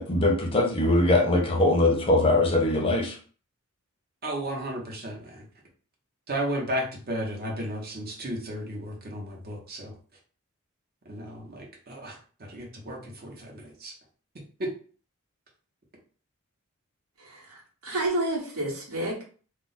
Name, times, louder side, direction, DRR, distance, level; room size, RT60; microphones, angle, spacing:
voice 1, 0.0-3.2, left 2 dB, 25° left, 1 dB, 0.5 m, -22 dB
voice 2, 4.2-5.5 6.3-9.9 11.1-12.2 12.5-13.9 14.6-14.7, right 1 dB, 45° right, -1 dB, 0.8 m, -34 dB
voice 3, 17.2-19.2, right 1 dB, 80° right, -3 dB, 1.1 m, -30 dB
2.3 x 2.0 x 3.8 m, 0.42 s
head